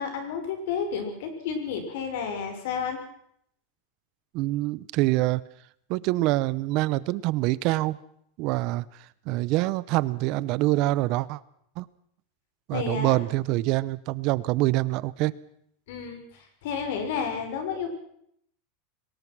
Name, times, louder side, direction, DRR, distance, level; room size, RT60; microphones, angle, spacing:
voice 1, 0.0-3.0 12.7-13.4 15.9-17.9, left 6 dB, 70° left, 6 dB, 6.0 m, -31 dB
voice 2, 4.3-5.4 5.9-8.0 8.4-8.8 9.3-11.4 11.8-11.9 12.7-15.3, right 18 dB, 45° right, 19 dB, 0.8 m, -25 dB
23.5 x 19.5 x 6.2 m, 0.70 s
supercardioid pair, 155°, 0 cm